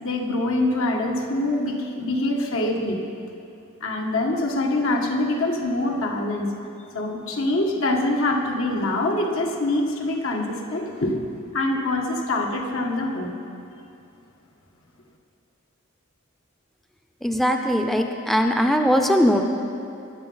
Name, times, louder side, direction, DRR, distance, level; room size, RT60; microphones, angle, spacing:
voice 1, 0.0-3.0 3.8-6.6 6.9-11.1 11.5-13.3, left 2 dB, 75° left, 1 dB, 1.7 m, -24 dB
voice 2, 17.2-19.4, equal, ahead, 4 dB, 0.6 m, -20 dB
22.0 x 7.7 x 5.7 m, 2.6 s
head